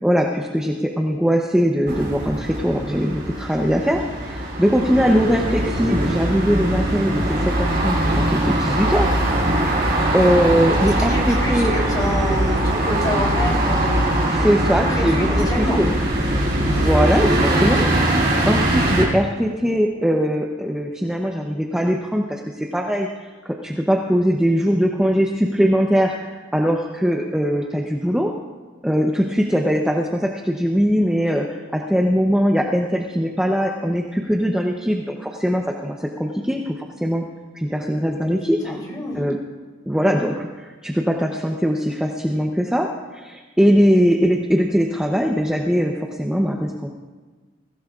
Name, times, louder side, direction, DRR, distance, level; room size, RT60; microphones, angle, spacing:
voice 1, 0.0-9.2 9.6-11.7 14.3-16.0 16.6-28.3 28.8-37.2 37.5-38.7 39.1-39.4 39.9-46.9, equal, 5° right, 0 dB, 0.7 m, -21 dB
sound 1, 1.9-19.0, right 1 dB, 45° right, 5.2 m, -21 dB
voice 2, 11.0-15.8 37.6-37.7 38.6-39.3, equal, 20° left, -2 dB, 3.3 m, -28 dB
22.5 x 16.0 x 2.4 m, 1.4 s
head